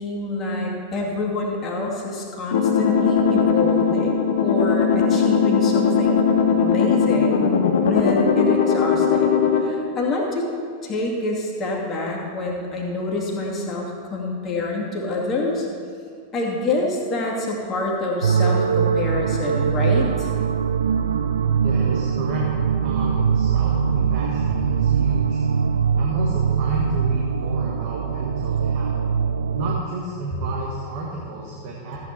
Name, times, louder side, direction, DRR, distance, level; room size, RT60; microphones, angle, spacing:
voice 1, 0.0-7.5 7.9-10.5 10.8-15.7 16.3-20.3, left 2 dB, 30° left, -2 dB, 2.3 m, -27 dB
sound 1, 2.5-9.6, left 6 dB, 60° left, 1.0 m, -19 dB
sound 2, 18.2-29.8, right 7 dB, 70° right, 0.4 m, -22 dB
voice 2, 21.6-22.5 22.8-25.4 25.9-29.0 29.5-32.0, right 2 dB, 45° right, -2 dB, 1.6 m, -31 dB
14.0 x 8.9 x 4.4 m, 2.3 s
figure-of-eight pair, 90°, 0 cm